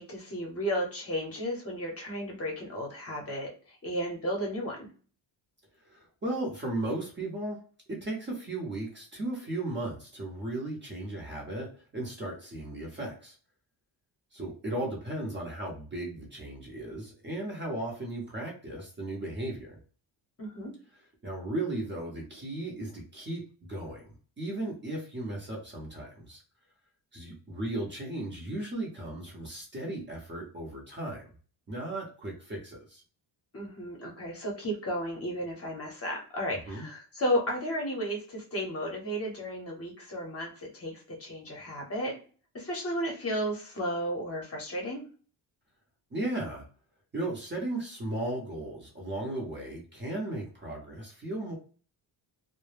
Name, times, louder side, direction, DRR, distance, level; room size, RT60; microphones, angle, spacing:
voice 1, 0.0-4.9 20.4-20.7 33.5-42.1 42.5-45.0, equal, 30° left, -1 dB, 0.8 m, -33 dB
voice 2, 5.8-7.6 7.9-11.7 11.9-13.4 14.3-19.8 21.2-24.0 24.4-26.4 27.1-31.3 31.7-33.0 36.7-36.9 46.1-46.6 47.1-51.6, right 1 dB, 25° right, -2 dB, 0.7 m, -36 dB
2.1 x 2.0 x 3.1 m, 0.39 s
cardioid pair, 145°, 45 cm